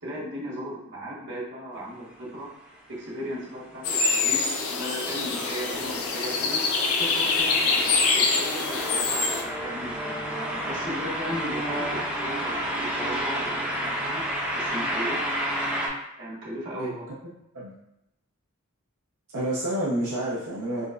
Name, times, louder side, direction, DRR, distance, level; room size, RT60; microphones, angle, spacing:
voice 1, 0.0-2.5 2.9-6.6 6.9-9.9 10.6-14.2 14.5-15.2 16.2-17.0, equal, 60° right, -5 dB, 1.2 m, -36 dB
sound 1, 3.4-15.9, right 1 dB, 5° right, 0.5 m, -31 dB
sound 2, 3.8-9.4, left 4 dB, 80° left, 0.5 m, -25 dB
voice 2, 19.3-20.9, right 1 dB, 85° right, -6 dB, 0.6 m, -29 dB
4.9 x 2.0 x 2.4 m, 0.84 s
head